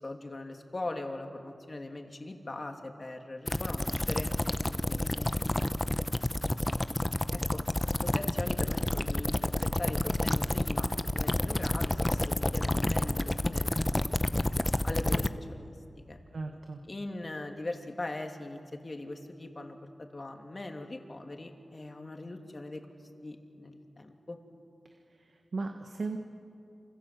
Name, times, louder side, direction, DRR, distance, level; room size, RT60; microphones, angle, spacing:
voice 1, 0.0-4.3 4.6-5.7 7.3-7.6 8.0-14.0 14.3-14.4 14.8-16.2 16.9-22.8 23.2-24.4, left 2 dB, 40° left, 3 dB, 2.9 m, -41 dB
sound 1, 3.5-15.3, left 1 dB, 20° left, 0.9 m, -29 dB
voice 2, 16.3-16.8 25.2-26.2, right 3 dB, 70° right, 4 dB, 1.5 m, -37 dB
28.0 x 26.0 x 7.8 m, 2.5 s
cardioid pair, 60°, 0 cm